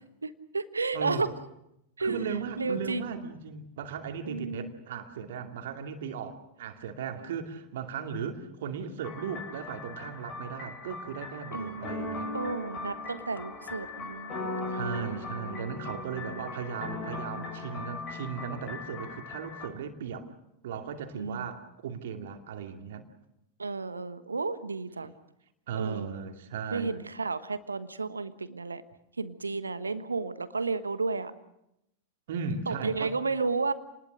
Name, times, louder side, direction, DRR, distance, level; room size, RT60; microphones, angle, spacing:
voice 1, 0.2-1.3 2.0-3.1 4.2-4.7 11.5-11.9 12.3-15.2 21.1-21.5 23.6-25.1 25.7-26.1 26.7-28.8 29.2-31.3 32.7-33.7, right 4 dB, 75° right, 13 dB, 1.3 m, -32 dB
voice 2, 0.9-1.3 2.0-12.3 14.7-20.3 20.6-23.1 25.7-26.9 32.3-33.1, right 6 dB, 55° right, 5 dB, 2.6 m, -37 dB
sound 1, 9.0-19.7, left 3 dB, 30° left, 7.8 m, -39 dB
29.0 x 20.5 x 6.5 m, 0.82 s
figure-of-eight pair, 90°, 0 cm